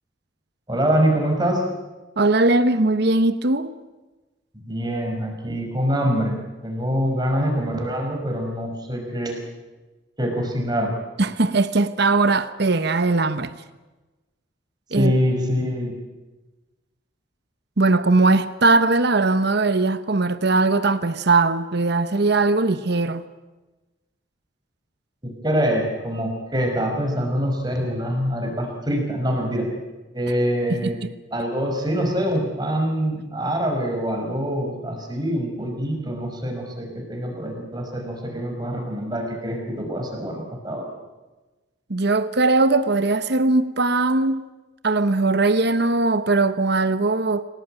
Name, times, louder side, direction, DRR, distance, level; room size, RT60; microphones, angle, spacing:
voice 1, 0.7-1.6 4.6-9.4 10.2-10.9 14.9-15.9 25.2-29.7 30.1-31.0 31.3-40.9, equal, 20° right, 5.4 m, -24 dB
voice 2, 2.2-3.8 11.2-13.5 14.9-15.1 17.8-23.2 30.7-31.1 41.9-44.4 44.8-47.4, right 3 dB, 55° right, 1.0 m, -20 dB
28.0 x 18.0 x 8.9 m
head